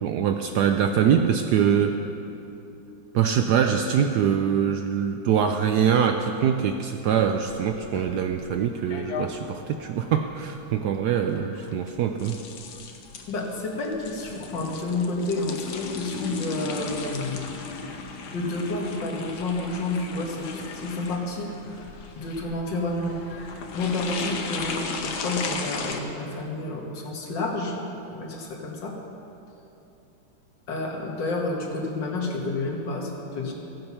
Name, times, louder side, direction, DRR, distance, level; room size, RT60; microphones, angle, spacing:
voice 1, 0.0-1.9 3.1-12.4, right 8 dB, 75° right, 5 dB, 1.0 m, -23 dB
sound 1, 7.3-26.0, left 4 dB, 85° left, 1.7 m, -36 dB
voice 2, 13.3-17.6 18.3-21.8 22.2-23.2 23.7-27.8 28.1-29.0 30.7-33.5, left 2 dB, 65° left, 0 dB, 2.1 m, -30 dB
15.5 x 7.8 x 5.6 m, 2.9 s
omnidirectional pair, 2.1 m